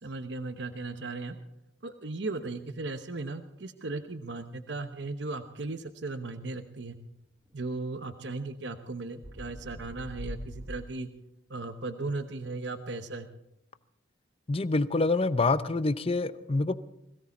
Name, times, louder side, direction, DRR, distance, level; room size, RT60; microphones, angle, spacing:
voice 1, 0.0-1.4 1.8-7.0 7.5-11.1 11.5-13.3, right 3 dB, 65° right, 0.9 m, -36 dB
sound 1, 7.5-7.6 7.8-7.9 9.2-10.8, equal, 15° right, 0.9 m, -41 dB
voice 2, 14.5-16.9, left 3 dB, 30° left, 0.6 m, -26 dB
21.0 x 16.0 x 4.2 m
head